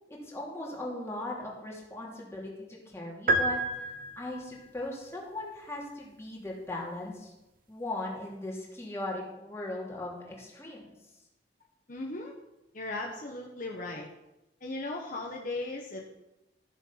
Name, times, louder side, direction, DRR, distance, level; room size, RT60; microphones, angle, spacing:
voice 1, 0.1-7.3 7.7-10.8, left 2 dB, 15° left, -3 dB, 2.8 m, -38 dB
sound 1, 3.3-4.6, right 1 dB, 50° right, 1.0 m, -29 dB
voice 2, 11.9-12.3 12.7-14.1 14.6-16.0, left 2 dB, 45° left, 0 dB, 1.2 m, -37 dB
13.5 x 7.2 x 5.8 m, 0.95 s
head